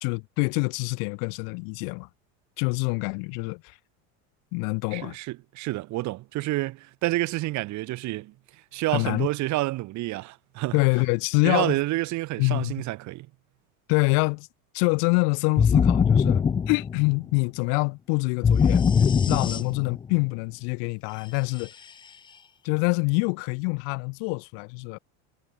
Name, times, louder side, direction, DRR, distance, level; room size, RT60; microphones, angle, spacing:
voice 1, 0.0-2.1 2.6-3.8 4.5-5.2 8.9-9.3 10.7-11.8 12.4-12.7 13.9-14.5 14.7-18.8 19.3-21.7 22.6-25.0, left 40 dB or more, 70° left, 1.8 m, -26 dB
voice 2, 4.9-8.3 8.7-10.7 11.4-13.3, right 18 dB, 50° right, 2.7 m, -29 dB
sound 1, 15.6-17.3 18.4-20.1, left 6 dB, 15° left, 0.4 m, -21 dB
supercardioid pair, 135°, 36 cm